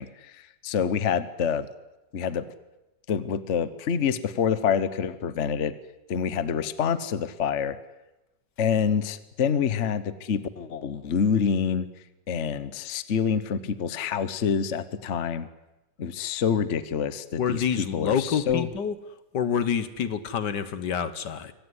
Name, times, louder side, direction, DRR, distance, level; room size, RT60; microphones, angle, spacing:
voice 1, 0.0-1.7 2.1-2.5 3.1-5.7 6.1-7.8 8.6-11.9 12.3-15.5 16.0-18.7, left 7 dB, 45° left, 13 dB, 1.2 m, -27 dB
voice 2, 17.4-18.9 19.3-21.5, left 7 dB, 65° left, 13 dB, 1.6 m, -27 dB
24.5 x 17.5 x 9.8 m, 1.0 s
omnidirectional pair, 2.1 m